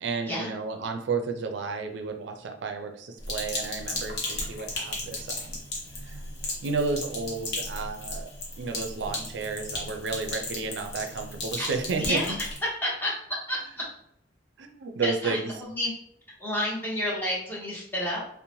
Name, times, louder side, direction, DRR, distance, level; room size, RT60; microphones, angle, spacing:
voice 1, 0.0-5.6 6.0-6.4 6.6-8.3 8.6-12.2 14.6-15.5, right 4 dB, 85° right, 5 dB, 0.4 m, -32 dB
Sink (filling or washing), 3.2-12.6, left 2 dB, 70° left, 0.8 m, -35 dB
voice 2, 12.0-12.3 12.8-13.1 13.5-13.8 15.0-15.9 16.4-18.2, left 1 dB, 10° left, -5 dB, 0.8 m, -30 dB
2.6 x 2.0 x 2.9 m, 0.70 s
head